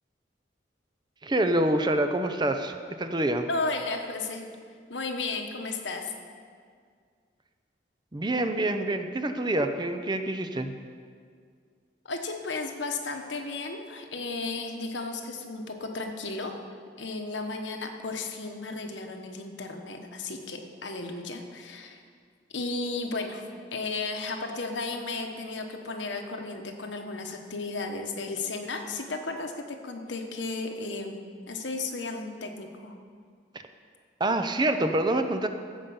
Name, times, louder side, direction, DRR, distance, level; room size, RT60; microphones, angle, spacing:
voice 1, 1.2-3.5 8.1-10.8 34.2-35.5, right 1 dB, 25° right, 7 dB, 0.6 m, -26 dB
voice 2, 3.5-4.5 4.9-6.1 12.0-16.6 17.0-22.0 22.5-23.4 23.7-32.9, left 3 dB, 80° left, 4 dB, 1.2 m, -34 dB
15.5 x 5.3 x 7.1 m, 2.1 s
head